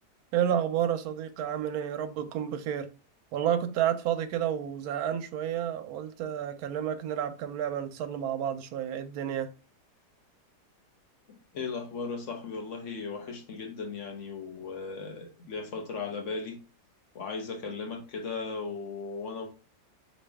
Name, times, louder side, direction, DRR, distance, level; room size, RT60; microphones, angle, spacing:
voice 1, 0.3-2.9 3.3-9.5, right 10 dB, 75° right, 1.0 m, -30 dB
voice 2, 11.3-16.6 17.1-19.5, left 4 dB, 50° left, 1.2 m, -37 dB
4.4 x 3.2 x 3.4 m
omnidirectional pair, 1.8 m